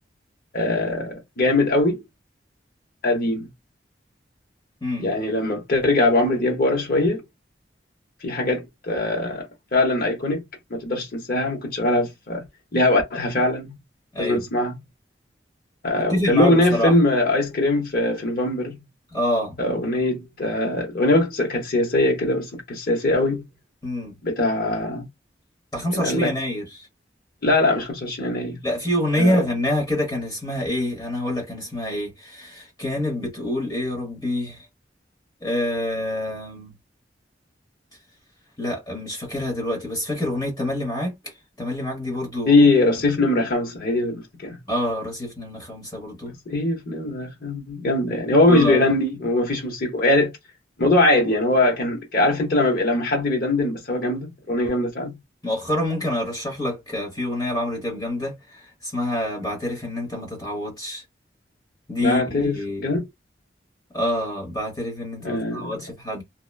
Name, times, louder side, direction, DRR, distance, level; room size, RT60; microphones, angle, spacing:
voice 1, 0.5-2.0 3.0-3.5 5.0-7.2 8.2-9.5 9.7-10.4 10.7-12.4 12.7-13.7 14.2-14.8 15.8-18.8 19.6-23.4 24.2-25.1 25.9-26.3 27.4-28.6 29.2-29.4 42.5-44.6 46.5-50.3 50.8-55.2 62.0-62.6 62.8-63.0 65.2-65.7, left 2 dB, 55° left, 0.9 m, -21 dB
voice 2, 14.1-14.4 16.1-16.9 19.1-19.6 23.8-24.1 25.7-26.9 28.6-34.6 35.4-36.7 38.6-42.6 44.7-46.3 48.5-48.9 55.4-61.0 61.9-63.0 63.9-66.2, left 1 dB, 20° left, 1.0 m, -27 dB
2.9 x 2.1 x 2.3 m
head